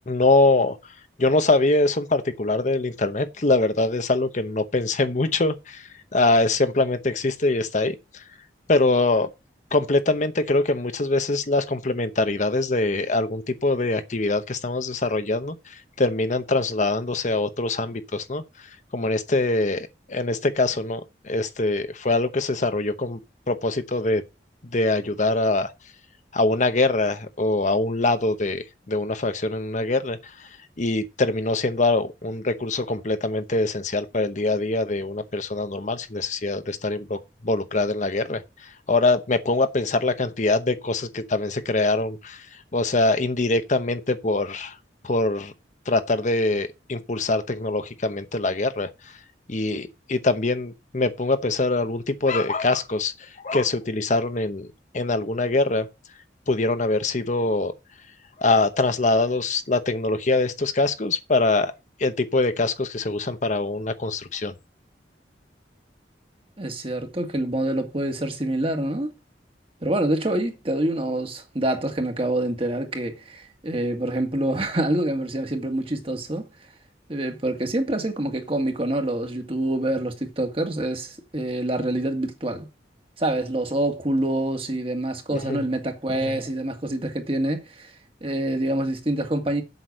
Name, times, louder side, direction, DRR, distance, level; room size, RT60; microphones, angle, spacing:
voice 1, 0.1-0.8 1.2-8.2 8.7-9.3 9.7-18.7 18.9-23.2 23.5-24.2 24.7-25.7 26.3-30.5 30.8-44.8 45.0-45.5 45.9-49.1 49.5-54.7 54.9-55.9 56.5-57.7 58.4-61.7 62.0-64.5 85.3-85.6 86.1-86.3, left 2 dB, 40° left, 0.9 m, -23 dB
voice 2, 66.6-69.1 69.8-76.5 77.1-82.7 83.2-87.9 88.2-89.6, right 1 dB, 30° right, 1.9 m, -26 dB
8.0 x 6.1 x 6.3 m
head